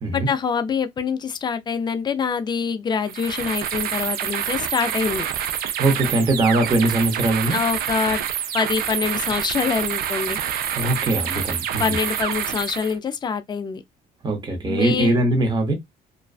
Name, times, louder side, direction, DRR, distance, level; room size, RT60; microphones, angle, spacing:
voice 1, 0.1-5.3 7.5-8.2 8.5-10.4 11.8-13.8 14.7-15.2, left 6 dB, 25° left, 0.4 m, -25 dB
sound 1, 3.0-13.0, right 9 dB, 60° right, 0.4 m, -27 dB
voice 2, 5.8-7.6 10.8-12.0 14.2-15.7, right 2 dB, 25° right, 0.8 m, -21 dB
2.4 x 2.2 x 2.3 m
cardioid pair, 110°, 17 cm